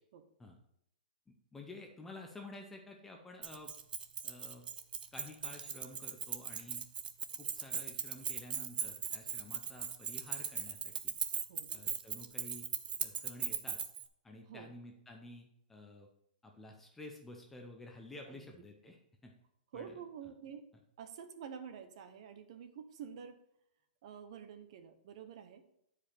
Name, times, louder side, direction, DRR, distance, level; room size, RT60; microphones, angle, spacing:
voice 1, 1.3-3.7 4.2-4.6 5.1-6.8 7.4-11.1 11.7-12.7 13.0-13.8 14.2-16.1 16.4-19.0 19.2-19.3 19.7-19.9, left 2 dB, 5° left, 2 dB, 0.4 m, -51 dB
Keys jangling, 3.4-14.0, right 7 dB, 80° right, 0.8 m, -39 dB
voice 2, 11.4-11.9 14.5-14.7 18.3-18.5 19.7-20.6 21.0-23.4 24.0-25.6, right 7 dB, 40° right, 9 dB, 0.7 m, -49 dB
9.0 x 5.0 x 4.3 m, 0.75 s
hypercardioid pair, 180°, 5 cm